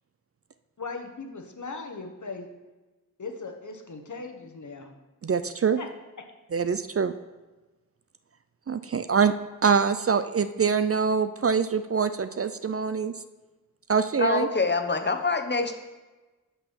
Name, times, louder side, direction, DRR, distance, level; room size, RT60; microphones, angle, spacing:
voice 1, 0.8-2.5 3.2-5.0 5.8-5.9, left 3 dB, 60° left, 4 dB, 1.1 m, -38 dB
voice 2, 5.2-5.8 6.5-7.1 8.7-9.3 9.6-13.1 13.9-14.5, right 6 dB, 45° right, 11 dB, 0.4 m, -24 dB
voice 3, 14.2-15.8, left 3 dB, 30° left, 7 dB, 0.9 m, -25 dB
6.3 x 5.6 x 5.8 m, 1.2 s
cardioid pair, 45°, 34 cm